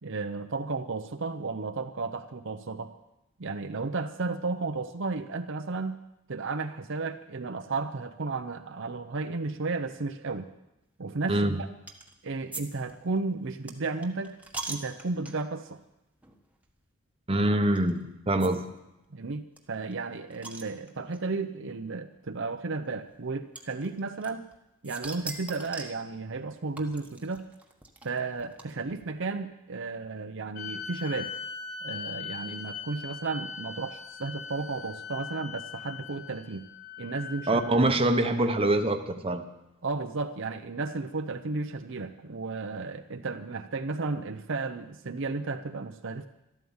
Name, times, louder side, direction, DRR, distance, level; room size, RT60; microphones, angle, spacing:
voice 1, 0.0-2.9 3.4-6.0 6.3-10.5 11.0-11.7 12.2-14.4 14.7-15.8 19.1-24.5 24.8-27.5 28.0-31.4 31.8-36.7 37.0-37.8 39.8-46.3, right 3 dB, 60° right, 7 dB, 0.7 m, -33 dB
sound 1, 11.9-12.1 12.5-12.6 12.9-15.6 16.2-16.4 16.6-16.7 17.7-17.9 18.4-18.5 18.8-18.9 19.0-19.1 19.6-21.2 22.1-22.2 23.5-24.5 24.8-26.0 26.8-29.0, right 3 dB, 5° right, 1.3 m, -41 dB
voice 2, 17.3-18.6 37.5-39.5, right 1 dB, 25° right, 6 dB, 1.0 m, -24 dB
sound 2, 30.5-38.0, left 6 dB, 45° left, 4.3 m, -40 dB
13.0 x 12.5 x 7.2 m, 0.92 s
head